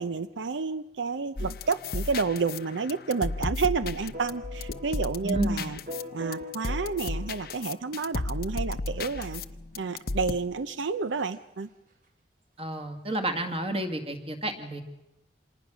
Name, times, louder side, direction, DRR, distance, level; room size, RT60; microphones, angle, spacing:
voice 1, 0.0-5.8 6.1-9.4 9.8-11.7, right 4 dB, 85° right, 13 dB, 0.7 m, -30 dB
sound 1, 1.4-10.3, left 3 dB, 50° left, 0.7 m, -34 dB
sound 2, 4.1-7.9 9.0-9.3 10.0-10.1 10.3-10.4 10.8-10.9 11.2-11.4 13.1-13.2, left 1 dB, 45° right, 2.5 m, -43 dB
voice 2, 5.2-5.7 12.6-14.8, right 1 dB, 30° right, 5 dB, 2.1 m, -30 dB
26.5 x 19.0 x 6.2 m, 0.94 s
head